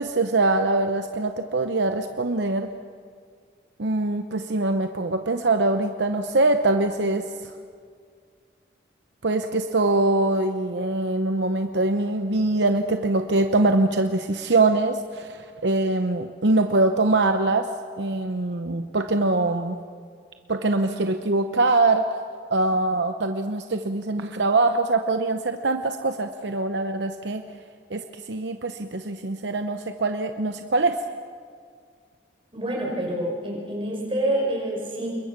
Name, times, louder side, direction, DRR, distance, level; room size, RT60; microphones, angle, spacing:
voice 1, 0.0-2.7 3.8-7.5 9.2-17.7 18.0-19.8 20.5-22.0 22.5-27.4 27.9-31.0, right 2 dB, 70° right, 7 dB, 0.9 m, -23 dB
voice 2, 32.5-35.1, right 1 dB, 30° right, -2 dB, 5.9 m, -27 dB
28.5 x 22.0 x 6.0 m, 2.1 s
head